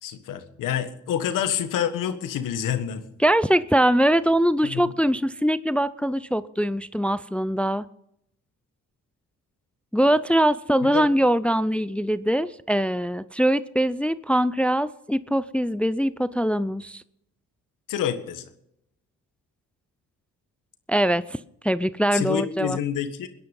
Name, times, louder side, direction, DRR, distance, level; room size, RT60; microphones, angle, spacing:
voice 1, 0.0-3.0 4.6-4.9 10.8-11.1 17.9-18.5 22.1-23.3, left 9 dB, 90° left, 9 dB, 1.6 m, -28 dB
voice 2, 3.2-7.9 9.9-17.0 20.9-21.4 21.6-22.8, equal, 5° left, 16 dB, 0.5 m, -22 dB
21.5 x 10.5 x 5.5 m, 0.78 s
cardioid pair, 85°, 31 cm